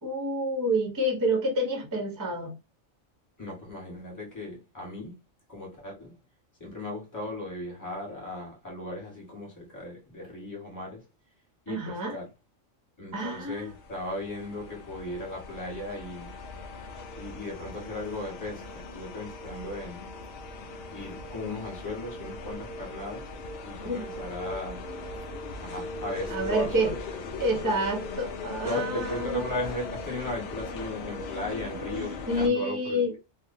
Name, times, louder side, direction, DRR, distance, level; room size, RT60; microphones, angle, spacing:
voice 1, 0.0-2.5 11.7-12.2 13.1-13.7 23.8-24.1 26.3-26.9 27.4-29.4 32.3-33.2, equal, 30° right, 0.4 m, -28 dB
voice 2, 3.4-5.1 5.5-6.1 6.6-11.0 11.7-12.3 13.0-16.3 17.2-20.0 20.9-23.2 23.6-24.8 25.6-27.0 28.6-33.2, left 1 dB, 15° left, 1.1 m, -36 dB
sound 1, 13.5-32.5, left 2 dB, 60° left, 0.7 m, -39 dB
2.5 x 2.1 x 2.6 m
omnidirectional pair, 1.4 m